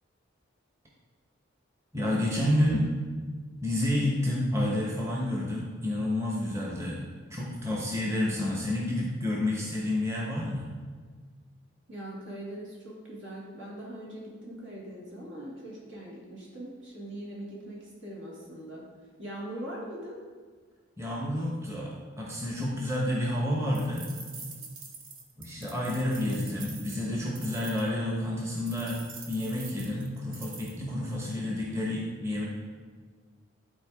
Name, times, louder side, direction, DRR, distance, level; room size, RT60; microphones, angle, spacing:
voice 1, 1.9-2.9 3.6-7.0 7.3-10.7 21.0-24.1 25.4-29.0 29.3-32.5, left 1 dB, 15° right, -4 dB, 1.0 m, -29 dB
voice 2, 11.9-18.8 19.2-20.2, right 1 dB, 70° right, -4 dB, 2.3 m, -41 dB
sound 1, 23.7-27.9 28.7-30.8, right 4 dB, 85° right, 1.1 m, -45 dB
11.5 x 4.4 x 3.6 m, 1.5 s
head